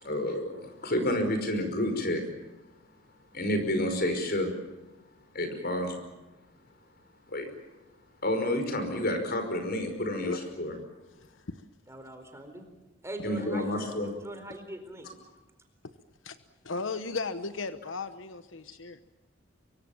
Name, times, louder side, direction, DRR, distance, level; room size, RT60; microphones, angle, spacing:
voice 1, 0.0-2.2 3.3-4.5 5.3-6.0 7.3-7.5 8.2-10.7 13.2-14.1, left 1 dB, 55° left, 7 dB, 5.4 m, -29 dB
voice 2, 11.9-12.7 13.0-13.7 14.2-15.1, right 1 dB, 15° right, 6 dB, 4.3 m, -42 dB
voice 3, 16.6-19.0, left 4 dB, 85° left, 11 dB, 1.1 m, -35 dB
25.0 x 23.5 x 7.3 m, 1.1 s
head